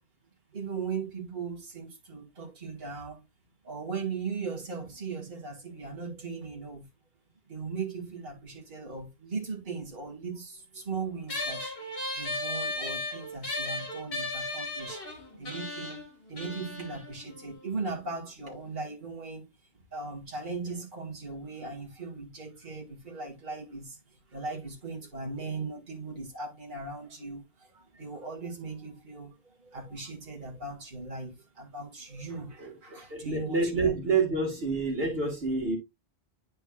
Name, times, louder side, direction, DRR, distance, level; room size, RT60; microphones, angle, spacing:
voice 1, 0.5-3.2 3.6-6.9 7.5-15.0 15.3-19.5 19.9-24.0 24.3-34.2, right 4 dB, 50° right, 1.9 m, -38 dB
sound 1, 11.3-18.1, left 2 dB, 60° left, 2.0 m, -36 dB
voice 2, 32.6-35.8, right 4 dB, 65° right, 2.0 m, -28 dB
10.0 x 4.5 x 2.3 m
omnidirectional pair, 1.1 m